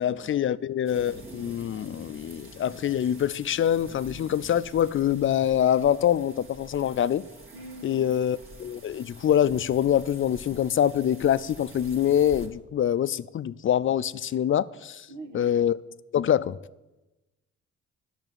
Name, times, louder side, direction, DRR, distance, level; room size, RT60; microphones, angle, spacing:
voice 1, 0.0-7.2 7.8-15.1 15.3-15.8 16.1-16.6, left 10 dB, 45° left, 0.4 m, -25 dB
sound 1, 0.8-12.5, right 1 dB, 45° right, 2.0 m, -47 dB
voice 2, 7.5-8.1 15.1-15.5, right 2 dB, 90° right, 1.7 m, -42 dB
11.0 x 6.0 x 9.1 m
cardioid pair, 90°, 30 cm